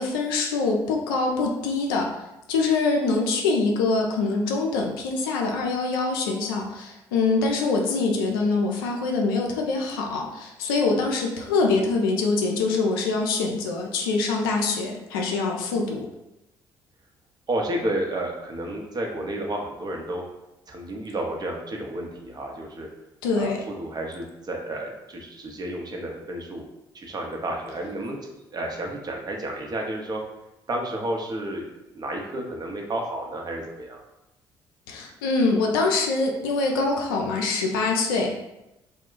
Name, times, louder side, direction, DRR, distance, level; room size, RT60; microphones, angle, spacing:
voice 1, 0.0-2.1 2.5-16.1 23.2-23.6 34.9-38.3, left 3 dB, 80° left, 1 dB, 0.4 m, -24 dB
voice 2, 17.5-20.2 20.7-22.9 23.4-26.6 26.9-30.2 30.7-31.7 31.9-34.0, right 1 dB, 35° right, 1 dB, 0.7 m, -31 dB
2.3 x 2.1 x 3.7 m, 0.93 s
hypercardioid pair, 50°, 12 cm